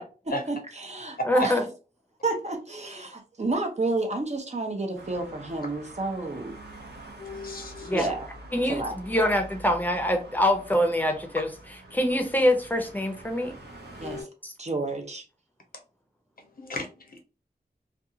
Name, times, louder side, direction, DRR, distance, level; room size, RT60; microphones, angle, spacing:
voice 1, 0.5-1.5 2.2-6.6 7.9-8.3 8.7-8.9 14.0-14.3 14.6-15.2, right 2 dB, 45° right, 3 dB, 0.7 m, -30 dB
voice 2, 1.3-1.6 7.9-8.1 8.5-11.5 11.9-13.5 14.4-14.5, left 1 dB, 10° left, 4 dB, 0.7 m, -24 dB
Traffic noise roadway noise, 5.0-14.2, right 1 dB, 90° right, 0.8 m, -46 dB
voice 3, 7.2-8.1 14.0-14.3 16.6-17.2, left 2 dB, 60° left, 4 dB, 0.7 m, -36 dB
2.5 x 2.3 x 2.7 m, 0.34 s
wide cardioid pair, 60°, 17 cm